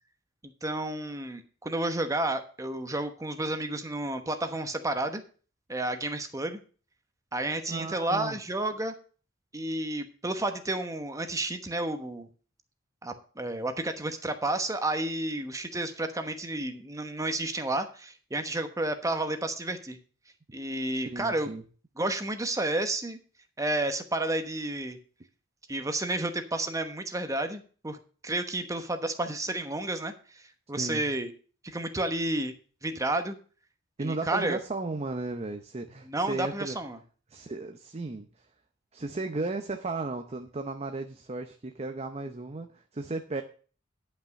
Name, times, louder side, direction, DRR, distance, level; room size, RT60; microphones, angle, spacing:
voice 1, 0.6-5.2 5.7-6.6 7.3-8.9 9.5-12.3 13.0-20.0 20.5-21.5 22.0-23.2 23.6-25.0 25.7-28.0 28.2-30.4 30.7-31.3 31.6-32.5 32.8-33.4 34.0-34.6 36.0-37.0, right 2 dB, 15° right, 8 dB, 1.1 m, -31 dB
voice 2, 7.7-8.4 21.0-21.6 30.8-31.1 34.0-36.8 37.3-38.3 38.9-43.4, right 3 dB, 30° right, 6 dB, 0.7 m, -35 dB
10.5 x 5.8 x 6.4 m, 0.40 s
head